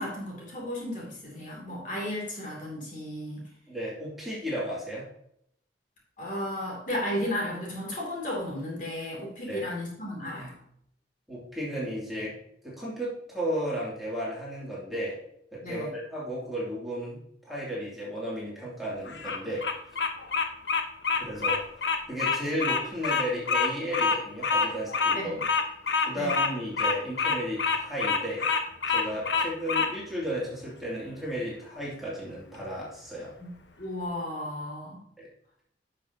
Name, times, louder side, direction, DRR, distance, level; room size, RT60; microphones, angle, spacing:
voice 1, 0.0-3.4 6.2-10.6 15.6-15.9 25.1-25.4 26.1-26.3 33.4-33.5 33.8-35.0, left 1 dB, 45° left, -3 dB, 2.6 m, -34 dB
voice 2, 3.7-5.0 9.5-9.6 11.3-12.3 12.6-15.2 15.5-17.2 17.4-19.6 21.2-21.6 22.1-25.3 26.1-28.4 28.9-33.3 35.2-35.3, equal, ahead, -7 dB, 2.6 m, -34 dB
Bird vocalization bird call bird song, 19.1-29.9, left 5 dB, 75° left, 0.9 m, -26 dB
10.5 x 6.2 x 2.8 m, 0.71 s
head